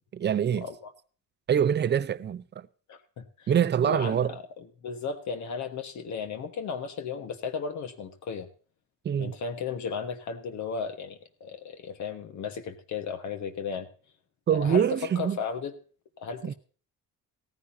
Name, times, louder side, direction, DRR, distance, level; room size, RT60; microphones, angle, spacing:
voice 1, 0.1-0.7 1.5-2.7 3.5-4.3 9.0-9.4 14.5-15.4 16.4-16.5, right 9 dB, 35° right, 0.6 m, -25 dB
voice 2, 2.9-3.5 3.8-4.2 4.8-8.5 9.2-13.9 14.5-14.9 15.2-15.7 16.2-16.5, left 6 dB, 60° left, 1.4 m, -35 dB
17.0 x 14.5 x 2.7 m
cardioid pair, 130°, 32 cm